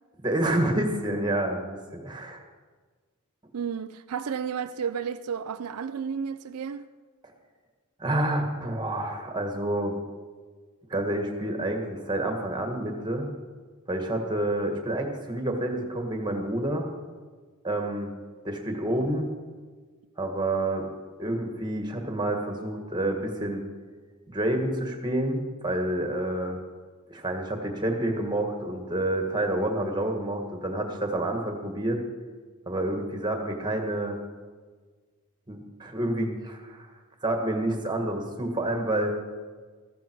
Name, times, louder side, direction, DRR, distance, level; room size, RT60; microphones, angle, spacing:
voice 1, 0.2-2.4 8.0-9.9 10.9-13.3 13.9-16.9 17.6-18.1 18.4-19.3 20.2-20.9 21.2-23.6 24.3-26.6 27.1-32.0 32.7-34.2 35.5-36.9 37.2-39.1, right 1 dB, 20° right, 1.7 m, -28 dB
voice 2, 3.5-6.9, right 7 dB, 80° right, 0.5 m, -32 dB
14.5 x 14.5 x 4.6 m
head